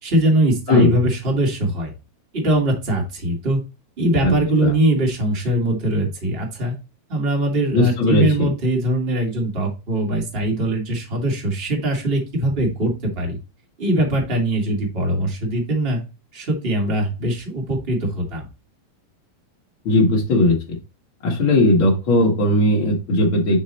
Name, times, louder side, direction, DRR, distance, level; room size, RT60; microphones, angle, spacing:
voice 1, 0.0-1.9 2.3-3.6 4.0-6.7 7.1-13.4 13.8-16.0 16.3-18.4, right 1 dB, 80° right, 0 dB, 0.5 m, -21 dB
voice 2, 7.7-8.5 19.8-20.8 21.2-23.6, left 1 dB, 80° left, -2 dB, 1.1 m, -17 dB
9.0 x 3.2 x 4.2 m, 0.29 s
omnidirectional pair, 4.9 m